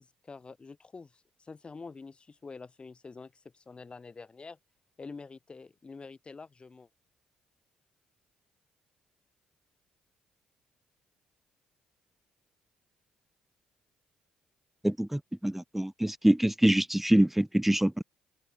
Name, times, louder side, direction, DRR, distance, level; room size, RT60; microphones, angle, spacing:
voice 1, 0.0-4.6 5.0-6.9, left 4 dB, 30° left, 3.4 m, -47 dB
voice 2, 14.8-18.0, right 1 dB, 5° right, 0.7 m, -25 dB
open air
hypercardioid pair, 55°, 3 cm